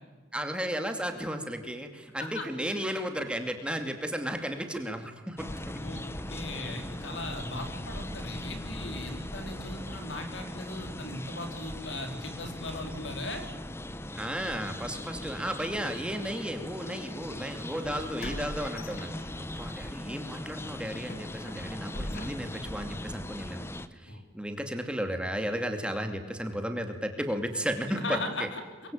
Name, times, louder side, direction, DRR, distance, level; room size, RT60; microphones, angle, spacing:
voice 1, 0.3-5.8 14.1-23.6 24.0-28.5, equal, 5° right, 5 dB, 2.4 m, -34 dB
sound 1, 5.4-23.9, left 1 dB, 15° left, 1.1 m, -39 dB
voice 2, 6.3-13.5 24.1-24.2 28.0-28.6, left 2 dB, 75° left, 5 dB, 4.4 m, -38 dB
sound 2, 17.1-17.2 18.2-19.7 20.1-20.2 20.7-22.8, left 1 dB, 50° left, 2.5 m, -41 dB
25.0 x 22.5 x 9.0 m, 1.3 s
head